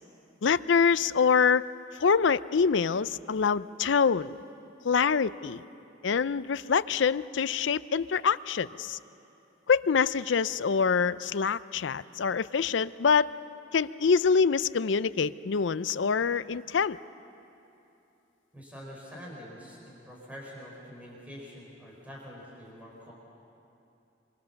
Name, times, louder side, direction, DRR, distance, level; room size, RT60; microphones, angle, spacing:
voice 1, 0.4-1.6 2.0-4.4 4.8-5.6 6.0-9.0 9.7-13.3 13.7-17.0, left 6 dB, 70° left, 16 dB, 0.5 m, -25 dB
voice 2, 18.5-23.1, equal, 5° right, -4 dB, 4.8 m, -45 dB
25.5 x 24.0 x 7.0 m, 2.8 s
head